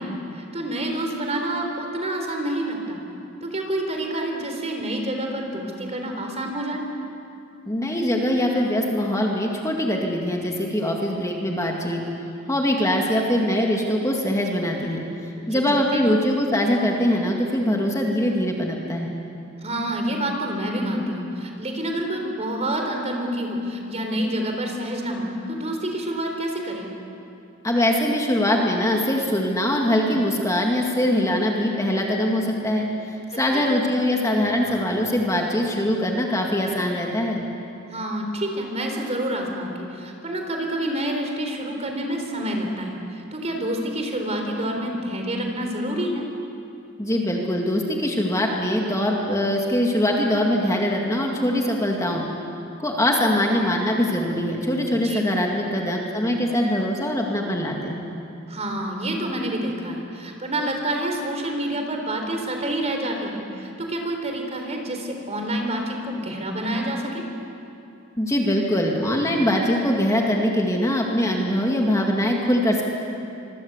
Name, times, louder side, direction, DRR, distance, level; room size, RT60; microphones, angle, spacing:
voice 1, 0.0-3.0 3.4-6.8 15.4-15.6 15.9-16.0 19.6-26.9 33.5-33.7 37.9-46.3 55.0-55.2 58.5-67.2, right 1 dB, 30° right, 3 dB, 4.0 m, -28 dB
voice 2, 7.7-12.0 12.5-19.2 27.6-37.5 47.0-52.2 52.8-58.1 68.2-72.8, left 1 dB, 15° left, 0 dB, 2.2 m, -22 dB
25.5 x 23.5 x 8.1 m, 2.7 s
head